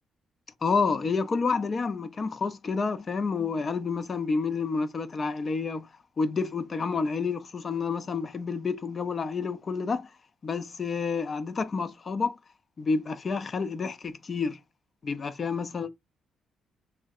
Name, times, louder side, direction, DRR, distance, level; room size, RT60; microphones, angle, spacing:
voice 1, 0.6-5.9 6.2-10.1 10.4-12.4 12.8-14.6 15.0-15.9, left 4 dB, 40° left, 0.4 m, -29 dB
2.7 x 2.1 x 3.4 m
cardioid pair, 90°, 0 cm